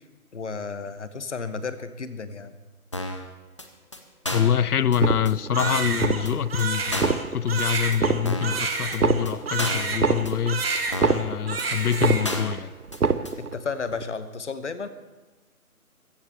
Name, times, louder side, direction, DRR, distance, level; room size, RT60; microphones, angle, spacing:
voice 1, 0.3-2.5 13.4-14.9, left 4 dB, 50° left, 1.2 m, -33 dB
sound 1, 2.9-3.3 3.6-3.7 3.9-4.0 4.3-4.6 4.9-5.0 5.3-5.4 5.6-5.9 6.3-6.4 6.6-6.7 6.9-7.2 7.6-7.7 7.9-8.0 8.3-8.6 8.9-9.0 9.3-9.4 9.6-9.9 10.3-10.4 10.6-10.7 10.9-11.3 11.6-11.7 11.9-12.0 12.2-12.6 12.9-13.0 13.3-13.4, left 1 dB, 20° left, 0.7 m, -31 dB
voice 2, 4.3-10.6 11.0-12.7, left 8 dB, 80° left, 0.6 m, -25 dB
sound 2, 4.9-5.6 5.9-6.5 6.9-7.6 7.9-8.6 8.9-11.6 11.9-12.6 12.9-13.6 13.9-14.0, right 5 dB, 85° right, 1.0 m, -26 dB
Crying sobbing, 5.5-10.2 10.5-11.2 11.5-12.4, right 4 dB, 40° right, 1.6 m, -29 dB
14.5 x 7.4 x 8.5 m
figure-of-eight pair, 155°, 44 cm